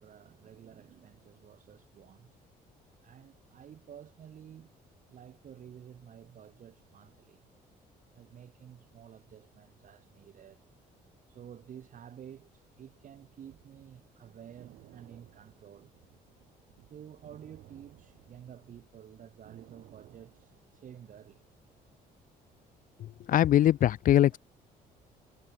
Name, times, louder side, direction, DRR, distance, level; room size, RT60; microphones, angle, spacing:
voice 1, 0.0-2.4 3.0-4.7 5.1-7.5 8.1-10.6 11.3-15.9 16.9-21.8 24.3-24.4, right 9 dB, 55° right, 4.5 m, -51 dB
sound 1, 13.1-18.8 19.2-21.1, right 17 dB, 85° right, 5.8 m, -57 dB
voice 2, 23.3-24.4, left 12 dB, 55° left, 0.5 m, -22 dB
cardioid pair, 105°, 17 cm